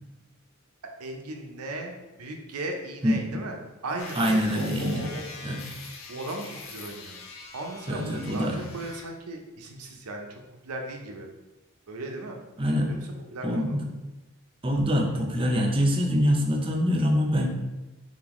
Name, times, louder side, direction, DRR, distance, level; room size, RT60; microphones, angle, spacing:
voice 1, 1.0-3.6 3.8-5.2 6.1-7.2 7.5-11.3 11.9-12.4 12.9-13.8, right 2 dB, 85° right, 2 dB, 0.6 m, -37 dB
voice 2, 3.0-3.4 4.2-5.1 5.4-5.6 7.9-8.6 12.6-12.9 13.4-13.8 14.6-17.5, equal, 25° right, 2 dB, 0.5 m, -24 dB
sound 1, 4.0-9.1, left 4 dB, 60° left, 0.6 m, -43 dB
3.9 x 3.9 x 3.0 m, 1.1 s
head